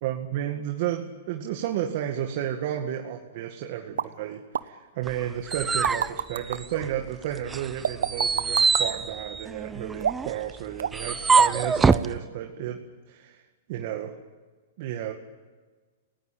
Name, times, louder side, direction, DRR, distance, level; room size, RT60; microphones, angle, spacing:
voice 1, 0.0-12.8 13.1-13.4 13.7-14.2 14.8-15.1, right 11 dB, 55° right, 4 dB, 2.1 m, -32 dB
sound 1, 4.0-4.1 4.5-4.7 5.5-6.6 7.8-8.9 10.0-10.4 10.8-11.1 11.3-11.6 11.9-12.0, right 8 dB, 85° right, 1.0 m, -28 dB
sound 2, 5.1-7.1 7.5-12.1, right 5 dB, 10° right, 0.7 m, -25 dB
28.5 x 18.0 x 8.8 m, 1.4 s
hypercardioid pair, 140°, 0 cm